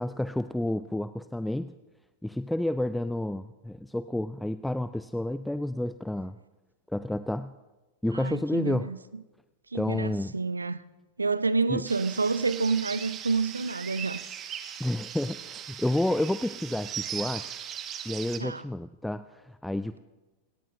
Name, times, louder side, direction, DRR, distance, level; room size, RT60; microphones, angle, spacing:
voice 1, 0.0-1.7 2.2-6.4 6.9-7.5 8.0-8.9 9.7-10.3 11.7-11.8 14.8-17.6 18.1-20.0, left 1 dB, 5° left, 0.4 m, -30 dB
voice 2, 8.1-9.0 9.7-10.8 11.2-14.2 18.4-18.6, right 4 dB, 80° right, 0.6 m, -28 dB
sound 1, 11.9-18.4, right 9 dB, 30° right, 1.4 m, -39 dB
28.0 x 17.5 x 2.6 m
figure-of-eight pair, 90°, 0 cm